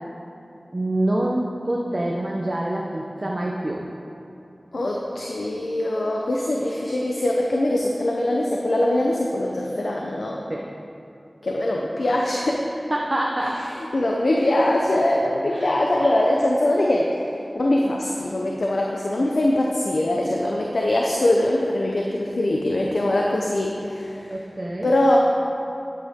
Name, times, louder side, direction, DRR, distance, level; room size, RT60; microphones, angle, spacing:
voice 1, 0.7-3.9 10.5-10.7 12.9-13.6 15.5-15.7 24.3-24.9, right 1 dB, 40° right, -2 dB, 0.9 m, -26 dB
voice 2, 4.7-10.4 11.4-12.6 13.9-17.3 17.5-24.3 24.8-25.2, left 1 dB, 80° left, -1 dB, 0.8 m, -22 dB
11.5 x 8.6 x 3.7 m, 2.9 s
wide cardioid pair, 45°, 0 cm